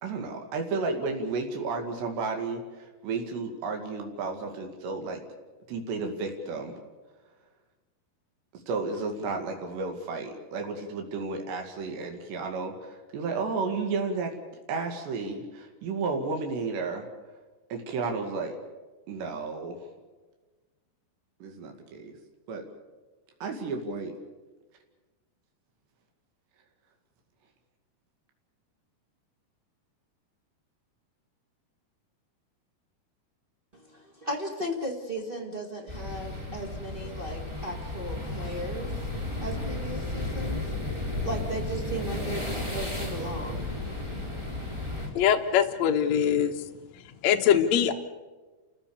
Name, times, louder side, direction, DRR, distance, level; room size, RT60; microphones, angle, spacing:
voice 1, 0.0-5.2 5.7-6.8 8.7-14.4 14.7-17.1 17.7-18.6 19.1-19.8 21.4-22.1 22.5-22.7 23.4-24.2, right 4 dB, 85° right, 3 dB, 4.3 m, -32 dB
voice 2, 33.7-38.9 39.4-40.6 41.1-43.7, right 1 dB, 40° right, 1 dB, 0.7 m, -36 dB
sound 1, 35.9-45.1, left 2 dB, 5° right, 3.6 m, -33 dB
voice 3, 45.1-46.5 47.2-47.9, left 9 dB, 60° left, 4 dB, 1.9 m, -22 dB
29.5 x 15.5 x 7.0 m, 1.3 s
omnidirectional pair, 4.8 m